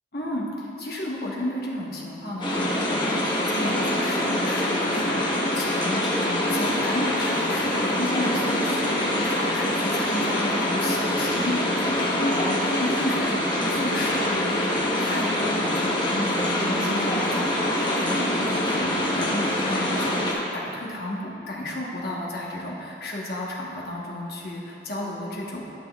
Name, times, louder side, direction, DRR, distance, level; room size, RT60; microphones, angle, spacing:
voice 1, 0.1-25.6, left 1 dB, 60° left, -3 dB, 1.1 m, -32 dB
sound 1, 2.4-20.3, left 1 dB, 25° left, 0.9 m, -25 dB
11.5 x 5.9 x 2.3 m, 2.8 s
head